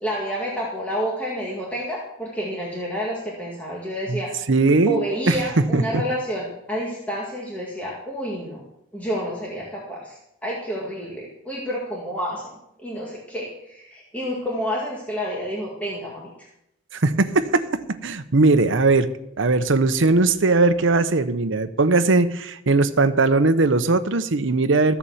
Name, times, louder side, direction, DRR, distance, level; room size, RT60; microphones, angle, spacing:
voice 1, 0.0-4.3 4.9-8.6 8.9-12.5 12.8-16.5, equal, 5° left, -4 dB, 2.0 m, -29 dB
voice 2, 4.5-5.4 5.7-6.0 16.9-19.1 19.4-25.0, right 3 dB, 70° right, 9 dB, 0.8 m, -19 dB
14.0 x 7.1 x 7.2 m, 0.80 s
head